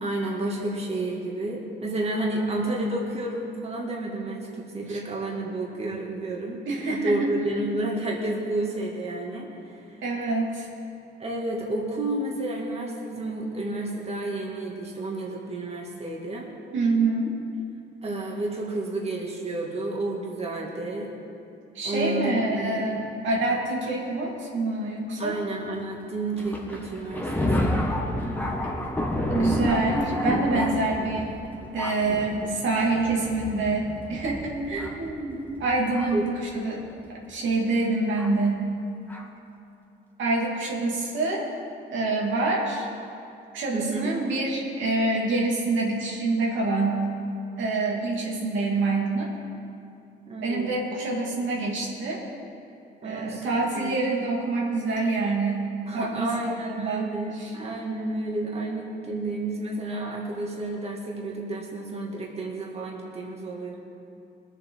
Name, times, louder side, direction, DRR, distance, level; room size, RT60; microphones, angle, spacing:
voice 1, 0.0-6.6 6.9-9.5 9.8-10.0 11.2-16.5 18.0-21.1 21.8-23.0 25.2-27.8 36.1-36.3 43.7-44.1 50.3-50.9 53.0-54.0 55.9-63.8, right 2 dB, 30° right, -2 dB, 2.1 m, -31 dB
voice 2, 6.7-7.2 7.4-7.7 10.0-10.7 16.7-17.3 21.7-25.3 29.3-31.3 31.7-36.8 37.3-38.6 40.2-41.5 41.9-42.9 43.5-47.1 47.6-49.3 50.4-52.2 53.0-55.7 55.9-57.1 57.4-57.5, right 3 dB, 75° right, -3 dB, 2.4 m, -26 dB
Thunder, 26.4-36.3 37.1-37.2 38.2-38.3 39.1-39.2, left 1 dB, 10° left, 1.6 m, -30 dB
20.0 x 7.3 x 4.7 m, 2.7 s
cardioid pair, 90°, 20 cm